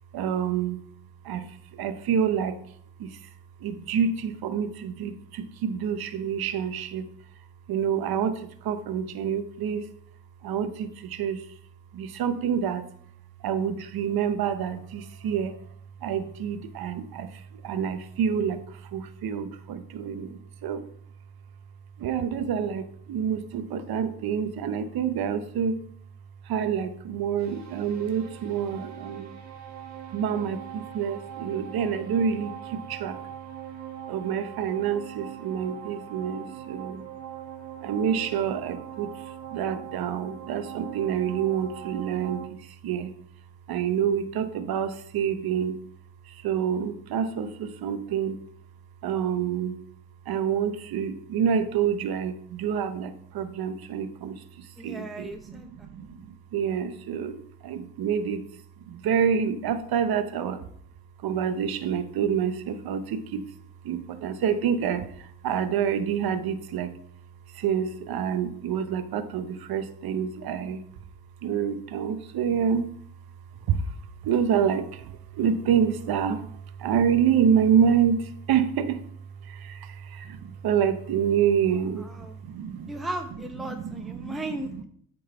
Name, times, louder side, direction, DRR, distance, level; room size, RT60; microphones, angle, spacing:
voice 1, 0.1-0.8 1.2-2.6 3.0-3.3 3.6-7.1 7.7-9.9 10.4-11.5 11.9-12.8 13.4-15.6 16.0-20.8 22.0-25.8 26.4-29.3 30.1-33.2 34.1-37.0 37.8-43.1 43.7-45.8 46.3-48.4 49.0-49.8 50.3-58.5 58.8-60.7 61.2-63.4 63.8-67.0 67.5-70.8 71.4-72.9 73.7-74.0 74.2-79.0 79.4-82.9 83.6-84.4, right 7 dB, 70° right, 10 dB, 0.8 m, -27 dB
sound 1, 27.4-42.5, right 10 dB, 45° right, 1.6 m, -41 dB
voice 2, 54.8-55.7 82.0-82.4 82.9-84.8, right 1 dB, ahead, 3 dB, 0.7 m, -36 dB
8.6 x 3.9 x 5.6 m, 0.63 s
cardioid pair, 85°, 38 cm